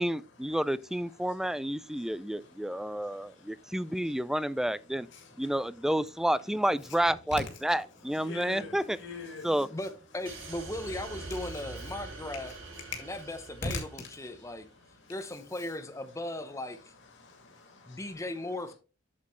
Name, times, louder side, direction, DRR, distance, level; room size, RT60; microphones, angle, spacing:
voice 1, 0.0-5.1 5.4-9.0 9.4-9.8, right 1 dB, ahead, 0.3 m, -30 dB
voice 2, 2.0-4.2 5.1-5.5 8.2-9.5 13.0-13.1 13.7-13.8 15.0-15.1 17.2-18.0, left 3 dB, 60° left, 2.3 m, -44 dB
voice 3, 9.7-12.6 13.0-14.7 15.1-16.9 17.9-18.7, left 1 dB, 15° left, 0.8 m, -38 dB
sound 1, 10.2-14.6, right 3 dB, 75° right, 3.6 m, -44 dB
8.4 x 7.4 x 3.1 m
head